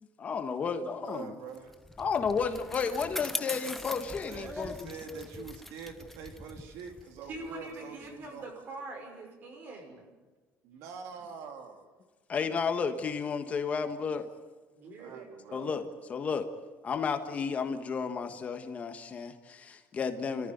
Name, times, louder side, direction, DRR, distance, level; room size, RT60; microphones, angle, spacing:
voice 1, 0.2-1.3 2.0-5.2 12.3-14.3 15.5-15.8 16.1-16.5 16.8-20.5, left 5 dB, 30° left, 7 dB, 1.4 m, -32 dB
voice 2, 1.0-1.8 4.2-8.5 10.8-11.9 15.0-15.6, right 6 dB, 80° right, 5 dB, 2.5 m, -45 dB
Bicycle, 1.5-8.3, left 1 dB, 5° left, 0.7 m, -42 dB
voice 3, 7.3-10.1 14.7-15.8, right 2 dB, 40° right, 3 dB, 6.0 m, -44 dB
29.5 x 14.5 x 9.3 m, 1.3 s
cardioid pair, 165°, 5 cm